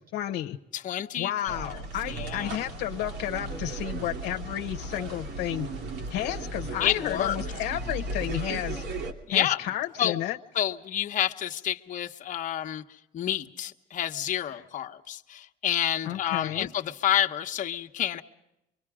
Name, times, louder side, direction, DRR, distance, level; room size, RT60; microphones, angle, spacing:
voice 1, 0.0-0.6 1.2-5.7 6.1-8.8 9.3-10.4 14.5-14.6 16.0-16.7, left 13 dB, 85° left, 5 dB, 1.0 m, -32 dB
voice 2, 0.7-1.7 2.1-2.6 6.8-7.4 9.3-9.6 10.0-10.2 10.5-12.8 13.1-18.2, left 11 dB, 50° left, 4 dB, 1.2 m, -29 dB
sound 1, 1.5-9.1, right 2 dB, 85° right, 2.8 m, -36 dB
25.0 x 24.0 x 5.0 m, 0.88 s
cardioid pair, 110°, 17 cm